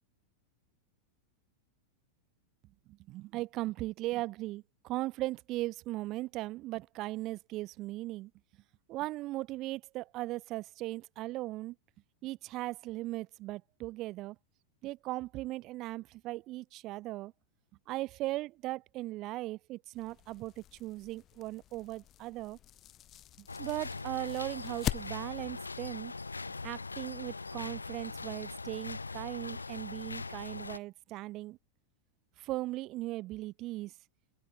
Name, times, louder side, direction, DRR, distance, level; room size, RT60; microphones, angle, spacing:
voice 1, 2.9-8.3 8.9-11.8 12.2-14.4 14.8-17.3 17.9-22.6 23.4-26.1 26.6-31.6 32.4-34.0, right 18 dB, 40° right, 0.8 m, -38 dB
sound 1, 19.9-25.5, left 12 dB, 30° left, 2.0 m, -43 dB
sound 2, 23.5-30.8, left 3 dB, 80° left, 0.5 m, -41 dB
open air
figure-of-eight pair, 90°, 0 cm